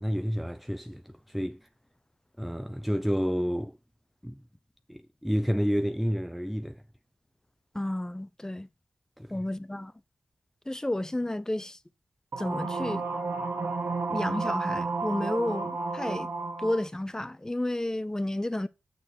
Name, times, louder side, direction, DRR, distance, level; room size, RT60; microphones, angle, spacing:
voice 1, 0.0-1.7 2.4-3.8 4.2-4.4 4.9-6.8 9.2-9.3, equal, ahead, 0.4 m, -30 dB
voice 2, 7.7-8.7 9.3-9.9 10.7-11.8 12.4-13.0 14.1-16.3 16.6-18.7, left 1 dB, 15° left, 0.8 m, -31 dB
sound 1, 12.3-16.8, right 3 dB, 70° right, 1.5 m, -31 dB
6.8 x 6.3 x 7.7 m
cardioid pair, 65°, 4 cm